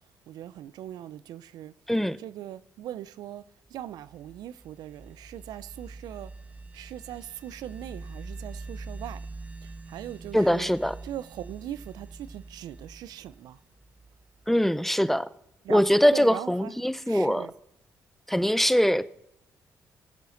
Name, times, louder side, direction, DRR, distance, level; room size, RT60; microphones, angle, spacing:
voice 1, 0.3-1.7 2.2-3.4 3.7-6.3 6.7-9.2 9.6-10.7 11.0-13.6 15.6-16.8 17.1-17.5, right 12 dB, 80° right, 0.5 m, -40 dB
sound 1, 3.9-14.4, right 3 dB, 25° right, 1.6 m, -44 dB
voice 2, 10.3-11.0 14.5-15.3 15.7-17.5 18.3-19.1, equal, 5° left, 0.6 m, -22 dB
20.0 x 8.3 x 3.9 m
supercardioid pair, 60°, 7 cm